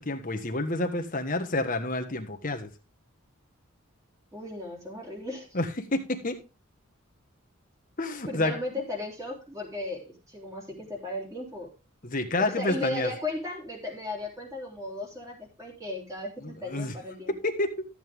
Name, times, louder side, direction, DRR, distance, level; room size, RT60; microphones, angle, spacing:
voice 1, 0.0-2.7 5.5-6.4 8.0-8.5 12.0-13.1 16.6-16.9 17.4-17.8, left 2 dB, 40° left, 6 dB, 1.5 m, -29 dB
voice 2, 4.3-5.6 8.3-11.7 12.4-17.3, left 2 dB, 15° right, -1 dB, 3.7 m, -36 dB
13.5 x 8.0 x 3.6 m, 0.29 s
head